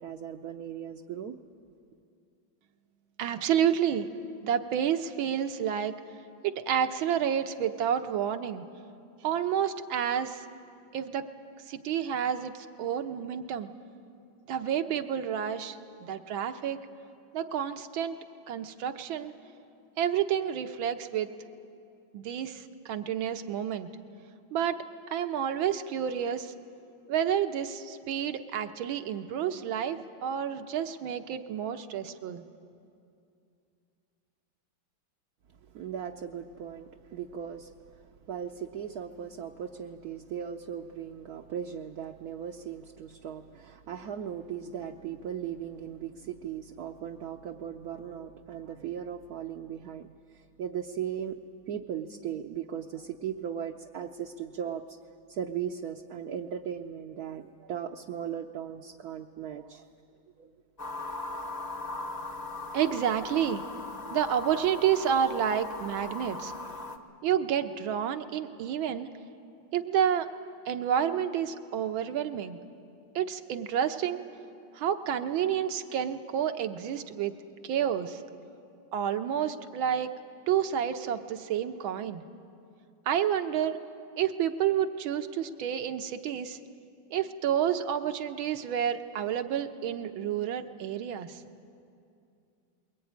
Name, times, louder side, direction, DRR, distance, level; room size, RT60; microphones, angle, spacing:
voice 1, 0.0-1.4 35.7-37.7 38.3-51.4 51.7-55.0 55.3-59.9 60.4-60.5, right 8 dB, 65° right, 3 dB, 1.0 m, -38 dB
voice 2, 3.2-4.1 4.4-5.9 6.4-8.6 9.2-10.4 10.9-11.3 11.7-13.7 14.5-16.8 17.3-18.2 18.5-19.3 20.0-21.3 22.1-23.9 24.5-24.8 25.1-26.5 27.1-32.4 62.7-63.6 64.1-66.5 67.2-69.1 69.7-70.3 70.7-72.6 73.2-74.2 74.8-77.3 77.6-78.2 78.9-80.1 80.5-82.2 83.1-83.8 84.2-86.6 87.1-91.4, right 9 dB, 80° right, 8 dB, 1.8 m, -29 dB
sound 1, 60.8-67.0, left 2 dB, 25° left, 0.9 m, -39 dB
22.0 x 19.5 x 9.4 m, 2.5 s
omnidirectional pair, 2.2 m